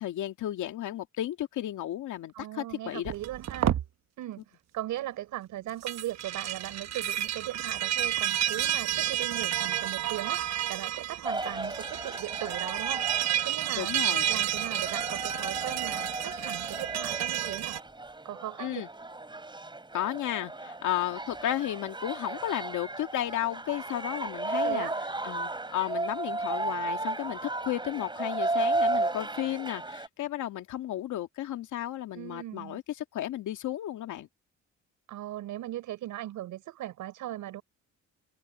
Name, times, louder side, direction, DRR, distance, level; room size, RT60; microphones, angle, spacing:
voice 1, 0.0-3.1 13.8-14.3 18.6-18.9 19.9-24.9 25.2-34.3, left 13 dB, 80° left, 2.2 m, -33 dB
voice 2, 2.3-3.8 4.2-13.1 13.4-13.9 14.3-17.8 18.2-18.8 24.5-25.0 32.1-32.8 35.1-37.6, right 14 dB, 85° right, 5.6 m, -38 dB
sound 1, 3.0-3.9 5.7-17.8, right 11 dB, 60° right, 1.1 m, -31 dB
sound 2, 11.2-30.1, right 2 dB, 15° right, 5.1 m, -34 dB
cardioid pair, 90°, 30 cm